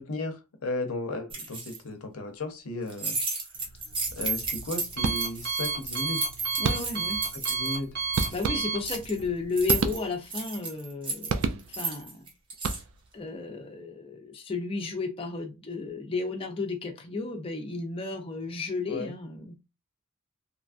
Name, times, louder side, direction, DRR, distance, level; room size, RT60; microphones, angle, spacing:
voice 1, 0.0-3.2 4.2-6.2 7.5-7.9 18.9-19.1, left 2 dB, 85° left, 0.6 m, -34 dB
sound 1, 1.3-1.8 2.9-7.8 8.0-9.2 9.6-12.8, right 4 dB, 25° right, 0.7 m, -33 dB
Alarm, 3.5-9.9, right 5 dB, 50° right, 0.9 m, -34 dB
sound 2, 5.0-5.6 6.6-7.2 8.2-9.0 9.7-10.4 11.3-12.0 12.5-13.2, right 4 dB, 65° right, 0.3 m, -31 dB
voice 2, 6.6-7.2 8.3-12.3 13.1-19.6, left 3 dB, 25° left, 0.5 m, -33 dB
3.0 x 2.4 x 2.4 m
head